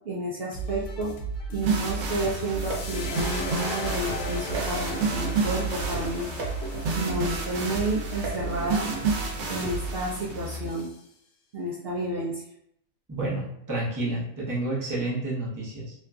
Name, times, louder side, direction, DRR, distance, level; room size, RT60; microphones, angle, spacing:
voice 1, 0.1-1.1 1.5-6.3 6.9-8.9 9.5-10.9 11.5-12.4, right 1 dB, 60° right, -5 dB, 0.7 m, -31 dB
sound 1, 0.5-11.1, right 4 dB, 70° left, 0.8 m, -35 dB
sound 2, 1.6-10.6, right 4 dB, 90° right, 1.1 m, -31 dB
sound 3, 2.6-9.0, left 4 dB, 90° left, 1.0 m, -39 dB
voice 2, 13.1-15.9, right 2 dB, 20° right, -6 dB, 0.6 m, -30 dB
2.8 x 2.5 x 2.3 m, 0.73 s
omnidirectional pair, 1.4 m